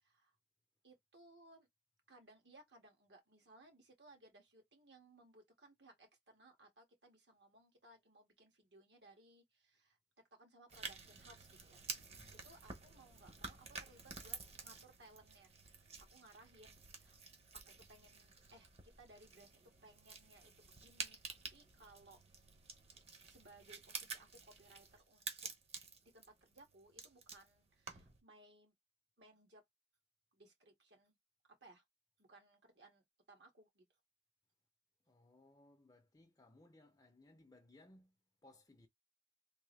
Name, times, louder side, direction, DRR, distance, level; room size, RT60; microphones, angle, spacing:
voice 1, 0.0-0.4 0.8-1.7 2.1-10.0 10.3-11.8 12.3-15.5 16.0-17.2 17.5-21.2 21.5-22.2 23.2-25.5 26.0-28.7 29.2-29.6 30.3-31.1 31.6-31.8 32.2-33.8, right 2 dB, 70° right, 1.9 m, -63 dB
sound 1, 10.7-28.2, right 4 dB, 35° right, 1.0 m, -51 dB
voice 2, 35.1-38.2 38.4-38.9, left 2 dB, 20° left, 0.6 m, -64 dB
3.6 x 2.7 x 3.3 m
head